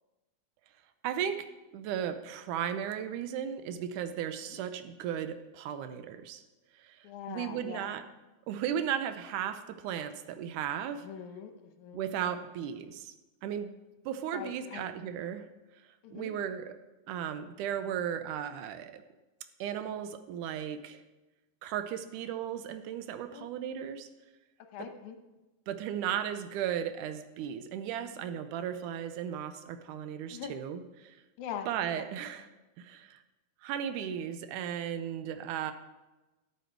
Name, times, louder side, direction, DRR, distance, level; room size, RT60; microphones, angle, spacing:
voice 1, 1.0-1.4 1.7-6.4 6.8-8.0 8.5-11.1 11.9-13.1 13.4-13.7 14.1-15.5 16.1-16.7 17.1-19.0 19.6-21.0 21.6-24.1 25.7-31.2 31.7-32.5 32.8-33.2 33.6-35.7, right 9 dB, 85° right, 10 dB, 2.2 m, -35 dB
voice 2, 7.0-7.9 11.0-12.1 14.3-14.9 16.0-16.3 23.3-23.5 24.7-25.2 30.3-30.6 31.4-32.1, left 8 dB, 75° left, 6 dB, 2.2 m, -42 dB
9.9 x 8.3 x 4.5 m, 1.1 s
omnidirectional pair, 3.5 m